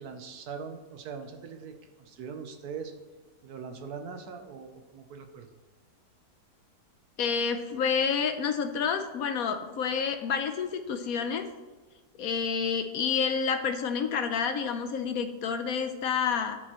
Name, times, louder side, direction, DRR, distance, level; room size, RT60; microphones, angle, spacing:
voice 1, 0.0-2.9 3.4-5.5, right 6 dB, 70° right, 6 dB, 1.3 m, -41 dB
voice 2, 7.2-11.5 12.2-16.6, left 6 dB, 65° left, 8 dB, 1.0 m, -29 dB
14.0 x 6.2 x 3.0 m, 1.3 s
omnidirectional pair, 1.8 m